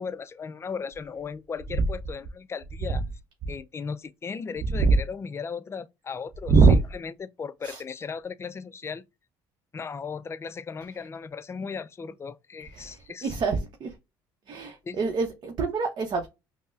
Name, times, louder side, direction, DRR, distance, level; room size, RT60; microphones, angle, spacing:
voice 1, 0.0-3.1 3.5-9.0 9.7-13.3 14.8-15.0, left 5 dB, 25° left, 0.4 m, -36 dB
voice 2, 6.5-6.8 7.6-7.8 12.7-13.9 14.5-16.3, right 4 dB, 45° right, 0.7 m, -23 dB
5.2 x 2.0 x 2.4 m
hypercardioid pair, 70°, 10 cm